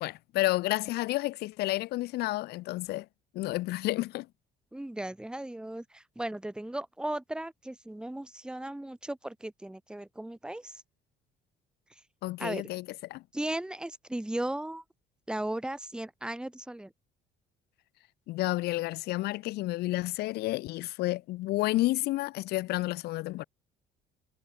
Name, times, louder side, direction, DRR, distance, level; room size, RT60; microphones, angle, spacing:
voice 1, 0.0-3.1 3.3-4.3 12.2-12.8 13.1-13.2 18.3-23.4, left 18 dB, 75° left, 0.5 m, -30 dB
voice 2, 4.7-10.8 11.9-12.0 12.4-12.6 13.3-14.8 15.3-16.9, right 1 dB, 5° right, 1.3 m, -36 dB
cardioid pair, 110°, 17 cm